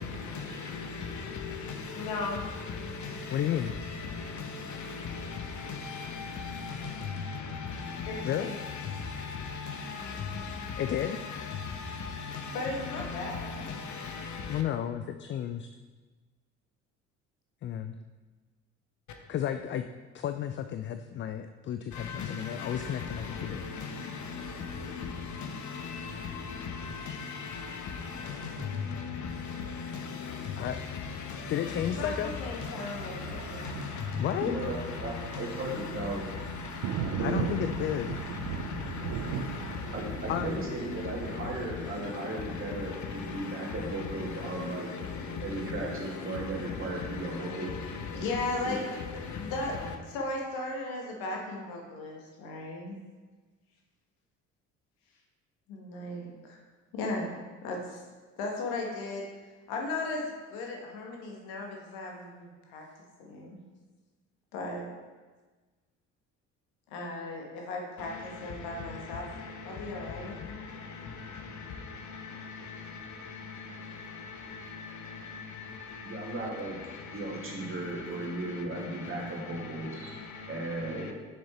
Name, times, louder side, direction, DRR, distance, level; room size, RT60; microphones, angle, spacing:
voice 1, 0.0-14.6 21.9-49.9 73.4-73.5 74.5-74.6 75.3-75.4, left 5 dB, 50° left, 1.1 m, -38 dB
voice 2, 1.9-2.4 8.1-8.7 12.5-13.7 31.9-33.9 48.1-48.8 49.4-49.7 50.1-53.0 55.7-56.6 56.9-57.3 57.6-58.0 58.4-59.3 59.7-62.8 63.2-63.6 64.5-64.9 66.9-69.2 69.6-70.6, left 2 dB, 65° left, 1.6 m, -36 dB
voice 3, 3.3-3.7 8.2-8.5 10.8-11.2 14.5-15.7 17.6-18.0 19.3-19.9 20.1-23.6 30.6-30.8 31.5-32.3 34.2-34.5 37.2-38.2 40.3-40.5, left 10 dB, 30° left, 0.4 m, -32 dB
Thunder, 32.1-41.8, right 8 dB, 55° right, 0.7 m, -38 dB
voice 4, 34.4-36.3 37.1-37.5 39.9-44.9 45.4-47.7 48.7-48.8 76.0-76.8 77.1-80.2 80.5-81.1, right 2 dB, 35° right, 2.5 m, -36 dB
6.6 x 6.5 x 4.3 m
hypercardioid pair, 55°, 38 cm